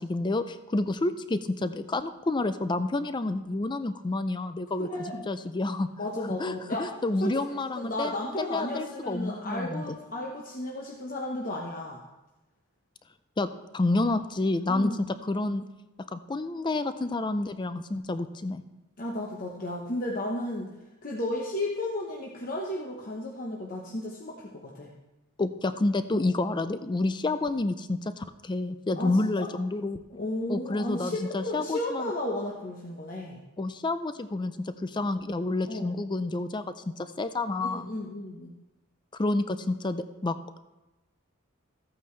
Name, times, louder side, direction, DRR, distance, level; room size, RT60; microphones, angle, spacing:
voice 1, 0.0-5.9 6.4-10.0 13.4-15.0 15.3-15.7 16.1-18.6 25.4-30.0 30.5-32.1 33.6-36.6 37.0-37.9 39.2-40.6, left 2 dB, 20° left, 11 dB, 0.4 m, -29 dB
voice 2, 4.9-5.2 6.0-6.9 7.2-7.3 7.8-12.0 14.7-15.1 19.0-20.7 21.0-24.9 26.1-26.3 28.9-29.1 29.4-29.5 30.1-33.4 35.7-35.9 37.6-38.5, left 1 dB, 40° left, -2 dB, 1.0 m, -33 dB
14.5 x 8.8 x 3.2 m, 1.0 s
head